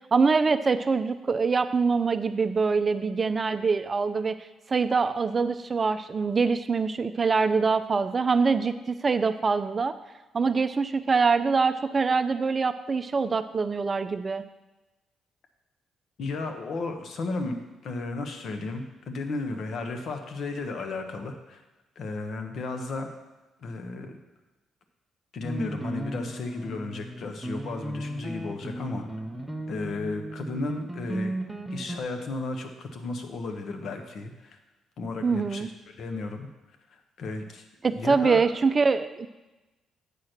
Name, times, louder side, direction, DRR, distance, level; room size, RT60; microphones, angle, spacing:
voice 1, 0.0-4.4 4.7-9.9 10.3-14.4 35.2-35.7 37.8-39.3, right 4 dB, 35° right, 11 dB, 0.5 m, -24 dB
voice 2, 16.2-17.6 17.8-21.6 22.0-23.1 23.6-24.2 25.3-29.1 29.7-31.4 31.7-34.6 35.0-35.7 36.0-36.5 36.9-37.6 37.9-38.4, left 3 dB, 65° left, 5 dB, 1.1 m, -34 dB
sound 1, 25.4-32.0, right 1 dB, 5° right, 0.9 m, -35 dB
8.3 x 4.5 x 6.5 m, 1.1 s
cardioid pair, 90°, 0 cm